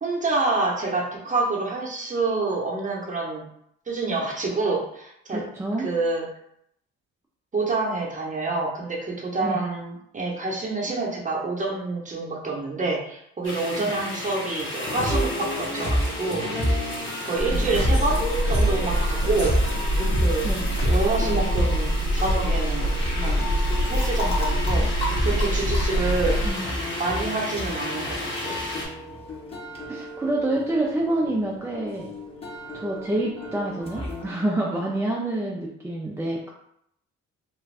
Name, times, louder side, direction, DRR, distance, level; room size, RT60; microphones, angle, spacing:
voice 1, 0.0-3.4 3.9-5.4 5.8-6.2 7.5-16.8 17.2-18.2 18.5-19.5 20.2-20.5 20.8-23.5 23.9-26.4 27.0-28.6, right 3 dB, 25° right, -2 dB, 0.8 m, -27 dB
voice 2, 5.3-5.9 9.4-9.6 13.8-13.9 17.5-17.9 20.4-20.7 26.4-26.7 29.9-32.1 32.7-36.5, right 1 dB, 10° right, -4 dB, 0.4 m, -27 dB
sound 1, 13.4-28.9, left 1 dB, 40° left, 1.1 m, -34 dB
sound 2, 14.8-34.3, equal, 20° left, 0.9 m, -30 dB
sound 3, 17.4-26.5, right 1 dB, 80° left, 0.8 m, -25 dB
2.5 x 2.3 x 3.2 m, 0.75 s
cardioid pair, 90°, 30 cm